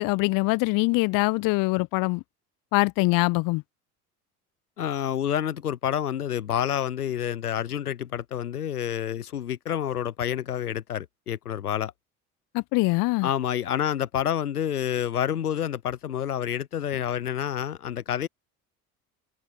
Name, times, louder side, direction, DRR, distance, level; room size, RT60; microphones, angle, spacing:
voice 1, 0.0-2.2 2.7-3.6 12.5-13.3, left 25 dB, 45° left, 0.9 m, -23 dB
voice 2, 4.8-11.9 13.2-18.3, left 10 dB, 80° left, 0.9 m, -28 dB
figure-of-eight pair, 65°, 44 cm